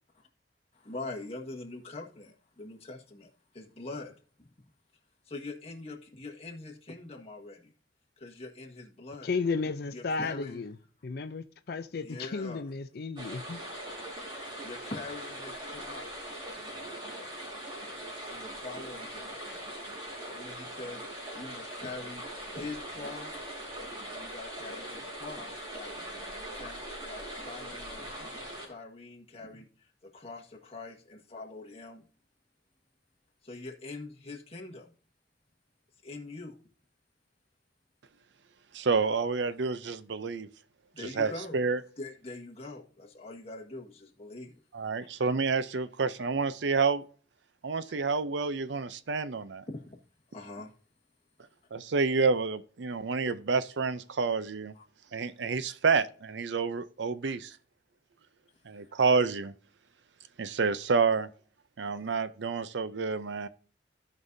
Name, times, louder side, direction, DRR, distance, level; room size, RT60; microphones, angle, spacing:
voice 1, 0.7-3.3 3.5-4.1 5.2-7.7 8.2-9.3 9.9-10.6 12.0-12.6 14.6-16.3 18.3-19.4 20.3-21.0 21.3-22.2 22.5-23.5 24.1-25.9 26.5-28.3 28.6-32.0 33.4-34.9 36.0-36.6 39.4-39.5 40.9-41.6 42.0-44.6 45.0-45.1 49.7-50.0 50.3-50.7 54.7-54.8 57.2-57.3, left 2 dB, 35° left, 1.6 m, -43 dB
voice 2, 9.2-10.7 11.0-13.6, left 4 dB, 55° left, 0.4 m, -33 dB
sound 1, 13.2-28.7, right 1 dB, 25° right, 2.8 m, -41 dB
voice 3, 38.7-40.5 41.0-41.8 44.7-47.0 47.6-49.6 51.7-54.7 55.1-57.5 58.7-59.5 60.4-61.3 61.8-63.5, right 4 dB, 70° right, 0.5 m, -29 dB
16.0 x 5.4 x 2.7 m
head